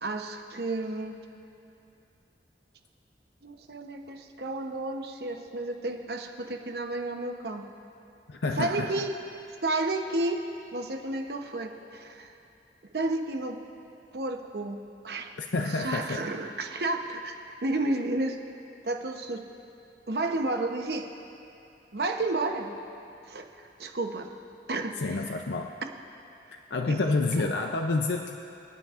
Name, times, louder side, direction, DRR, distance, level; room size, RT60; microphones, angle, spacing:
voice 1, 0.0-1.2 3.4-7.7 8.6-9.2 9.6-10.4 10.7-12.3 12.9-13.6 14.1-15.3 15.6-18.4 18.8-19.4 20.1-21.1 21.9-22.7 23.2-24.3 24.7-25.4 26.9-27.0 27.4-27.5, right 2 dB, 60° right, 5 dB, 0.8 m, -32 dB
voice 2, 8.3-9.0 15.4-16.3 25.0-25.8 26.5-28.4, left 3 dB, 80° left, 4 dB, 0.5 m, -29 dB
25.0 x 9.8 x 2.5 m, 2.7 s
head